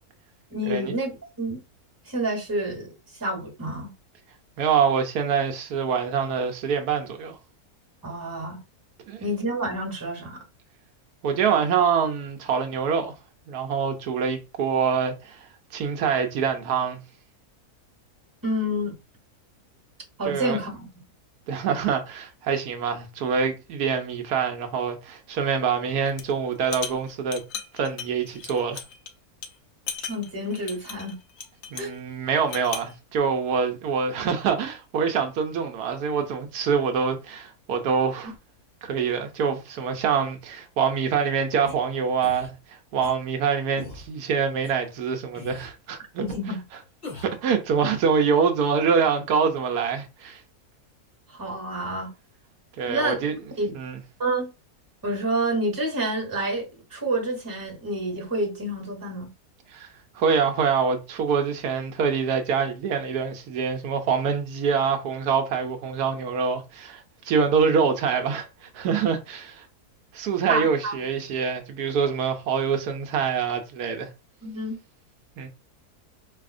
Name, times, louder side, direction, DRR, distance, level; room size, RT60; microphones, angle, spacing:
voice 1, 0.5-1.1 1.4-1.6 2.1-2.9 3.2-3.9 8.0-8.6 9.2-10.4 18.4-18.9 20.2-20.9 30.1-31.2 31.8-31.9 46.2-46.6 51.3-52.1 52.9-53.2 53.6-53.7 54.2-54.5 55.0-59.3 70.5-70.9 74.4-74.8, right 1 dB, 15° right, 1.2 m, -28 dB
voice 2, 4.6-7.4 9.1-9.2 11.2-13.1 13.5-15.5 15.7-17.0 20.3-20.6 21.5-27.4 27.7-28.8 31.7-38.3 38.8-46.0 47.2-50.4 52.8-53.3 53.7-54.0 59.7-69.6 70.1-74.1 75.4-75.5, right 6 dB, 80° right, 1.2 m, -25 dB
sound 1, 26.1-26.3 26.6-29.1 29.4-29.5 29.9-32.0 32.4-32.9, left 7 dB, 65° left, 0.7 m, -36 dB
sound 2, 41.7-41.8 42.2-42.5 43.0-43.1 43.7-44.1 44.6-44.7 45.3-45.7 46.3-46.4 47.0-47.4, left 3 dB, 35° left, 1.3 m, -40 dB
4.1 x 2.8 x 2.4 m
omnidirectional pair, 1.6 m